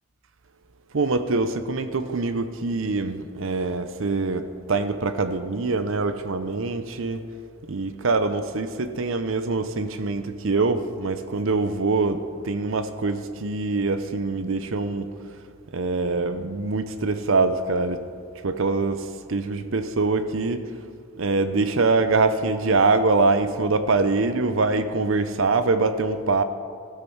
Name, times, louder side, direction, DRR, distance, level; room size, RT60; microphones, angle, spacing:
voice 1, 0.9-4.4 4.7-7.2 7.7-15.1 15.7-18.0 18.4-19.0 19.3-20.6 21.2-26.4, right 3 dB, 60° right, 11 dB, 0.6 m, -24 dB
15.0 x 13.5 x 4.6 m, 2.3 s
head